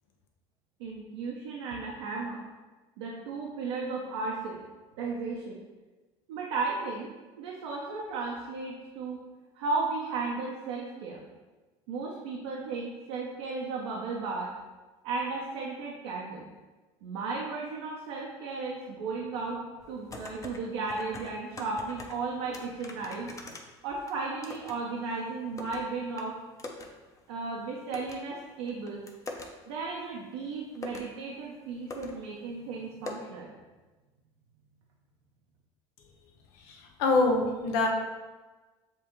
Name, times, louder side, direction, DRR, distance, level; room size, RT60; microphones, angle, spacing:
voice 1, 0.8-2.4 3.0-4.6 5.0-5.6 6.3-7.1 7.4-9.2 9.6-11.2 11.9-14.5 15.0-16.4 17.0-19.6 19.9-23.5 23.8-26.3 27.3-29.0 29.7-33.5, right 4 dB, 80° right, -3 dB, 0.7 m, -35 dB
sound 1, 19.8-20.6 20.9-22.2 22.5-24.8 25.1-25.8 26.2-26.3 26.6-26.9 27.2-27.3 27.9-28.2 28.7-29.5 30.3-30.4 30.7-31.1 31.6-31.7 31.9-32.1 32.4-32.5 33.1-33.2, left 2 dB, 25° left, 0.7 m, -42 dB
voice 2, 36.7-37.9, left 3 dB, 80° left, 1 dB, 0.8 m, -25 dB
6.8 x 2.4 x 3.0 m, 1.2 s
supercardioid pair, 85°, 13 cm